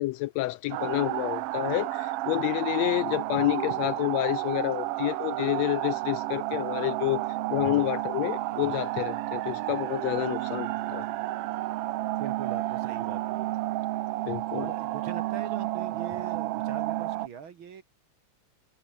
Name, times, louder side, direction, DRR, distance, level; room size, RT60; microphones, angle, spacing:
voice 1, 0.0-11.1 14.3-14.7, left 18 dB, 80° left, 1.6 m, -29 dB
sound 1, 0.7-17.3, right 16 dB, 80° right, 1.4 m, -31 dB
voice 2, 12.2-13.5 14.5-17.8, right 7 dB, 50° right, 2.0 m, -42 dB
omnidirectional pair, 3.3 m